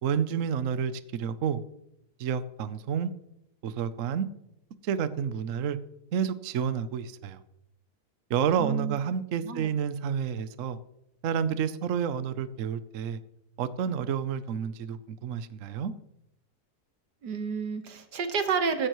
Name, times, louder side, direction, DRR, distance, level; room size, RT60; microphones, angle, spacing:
voice 1, 0.0-1.6 2.2-3.1 3.6-4.3 4.8-5.8 6.1-7.4 8.3-10.8 11.2-13.2 13.6-15.9, right 7 dB, 60° right, 13 dB, 1.0 m, -29 dB
voice 2, 8.6-9.0 9.4-9.7 17.2-18.9, right 5 dB, 90° right, 7 dB, 1.9 m, -30 dB
15.5 x 15.0 x 3.1 m, 0.82 s
omnidirectional pair, 1.7 m